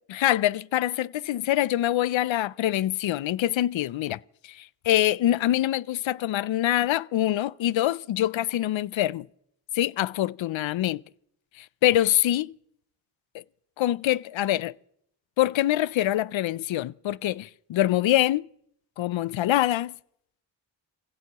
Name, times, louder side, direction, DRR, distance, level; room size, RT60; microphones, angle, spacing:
voice 1, 0.1-9.3 9.7-11.0 11.6-12.5 13.3-13.4 13.8-14.7 15.4-18.5 19.0-19.9, left 13 dB, 80° left, 0.5 m, -25 dB
25.5 x 16.0 x 2.9 m
cardioid pair, 50°, 45 cm